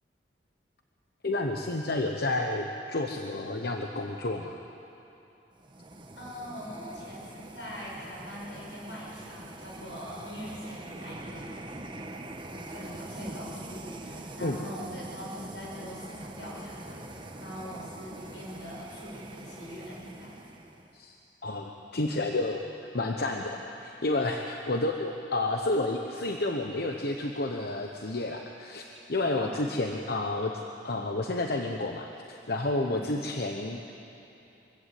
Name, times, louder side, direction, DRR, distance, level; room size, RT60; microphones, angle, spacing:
voice 1, 1.2-4.6 14.4-14.6 20.9-21.2 21.4-22.6 22.9-30.5 30.8-33.9, left 2 dB, 60° left, 3 dB, 1.1 m, -30 dB
sound 1, 5.6-21.0, right 1 dB, 30° right, 1.3 m, -44 dB
voice 2, 6.2-11.5 12.5-20.3 29.3-29.7 32.8-33.1, equal, 80° left, -4 dB, 7.3 m, -42 dB
23.5 x 15.5 x 8.5 m, 2.9 s
head